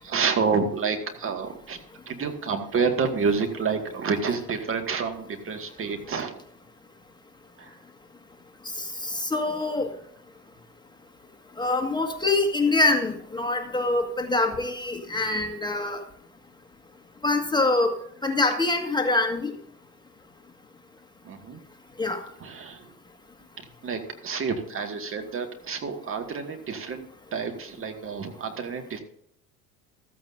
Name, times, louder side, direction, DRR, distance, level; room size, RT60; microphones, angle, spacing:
voice 1, 0.0-1.8 2.1-6.4 7.6-7.8 21.2-21.6 22.4-22.9 23.8-29.0, right 5 dB, 30° right, 5 dB, 2.0 m, -29 dB
voice 2, 8.8-9.9 11.6-16.0 17.2-18.0 18.2-19.5 22.0-22.2, left 2 dB, 10° left, 3 dB, 1.8 m, -25 dB
15.0 x 14.5 x 2.7 m, 0.69 s
figure-of-eight pair, 70°, 45 cm